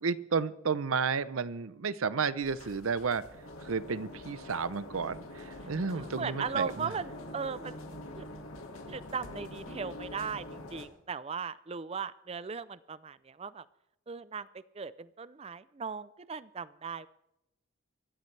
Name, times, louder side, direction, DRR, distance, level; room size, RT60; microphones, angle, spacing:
voice 1, 0.0-3.2 3.6-6.9, right 5 dB, 80° right, 16 dB, 0.7 m, -32 dB
sound 1, 2.4-10.9, left 1 dB, 90° left, 2.0 m, -45 dB
voice 2, 5.9-7.8 8.2-8.3 8.9-13.6 14.1-14.5 14.7-17.1, right 6 dB, 30° right, 17 dB, 0.4 m, -38 dB
24.5 x 13.5 x 3.3 m, 0.85 s
head